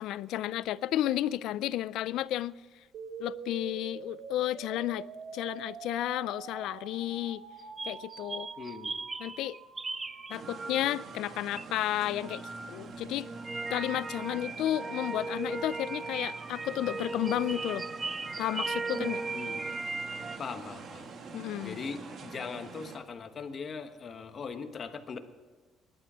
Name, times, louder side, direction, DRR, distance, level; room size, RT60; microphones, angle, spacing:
voice 1, 0.0-2.5 3.2-5.1 5.3-7.4 7.9-8.5 9.2-9.6 10.3-13.3 13.7-17.9 18.4-19.2 21.3-21.8, left 13 dB, 80° left, 0.4 m, -32 dB
sound 1, 2.9-12.9, right 6 dB, 70° right, 1.4 m, -46 dB
sound 2, 7.6-11.2 11.5-20.4, right 3 dB, 15° right, 0.4 m, -37 dB
voice 2, 8.6-9.0 19.3-19.7 20.4-21.1 21.6-25.2, left 5 dB, 35° left, 1.2 m, -40 dB
sound 3, 10.3-23.0, right 4 dB, 45° right, 1.6 m, -47 dB
20.5 x 11.5 x 5.0 m
cardioid pair, 150°, 0 cm